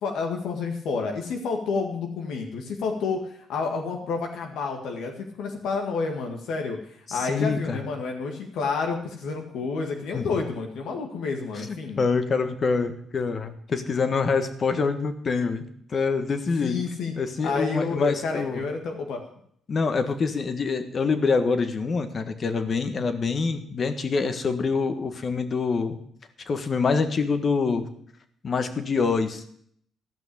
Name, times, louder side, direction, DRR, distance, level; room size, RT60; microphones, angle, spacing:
voice 1, 0.0-6.8 7.1-12.0 16.6-17.1 17.4-19.2, left 4 dB, 80° left, 2 dB, 1.8 m, -29 dB
voice 2, 7.1-7.8 10.1-10.4 11.7-16.8 17.1-18.6 19.7-26.0 26.5-27.9 28.4-29.4, left 4 dB, 45° left, 9 dB, 1.5 m, -25 dB
14.0 x 6.1 x 8.6 m, 0.65 s
cardioid pair, 90°, 0 cm